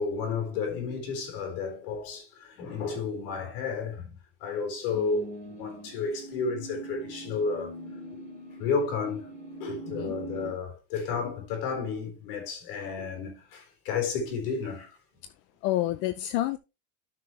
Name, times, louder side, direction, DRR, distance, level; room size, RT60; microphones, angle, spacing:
voice 1, 0.0-7.8 8.6-9.2 9.6-15.0, left 5 dB, 65° left, 4.3 m, -32 dB
sound 1, 4.9-10.5, right 1 dB, 25° left, 3.4 m, -42 dB
voice 2, 15.6-16.6, left 15 dB, 40° left, 0.5 m, -28 dB
12.5 x 6.0 x 3.2 m
supercardioid pair, 165°, 30 cm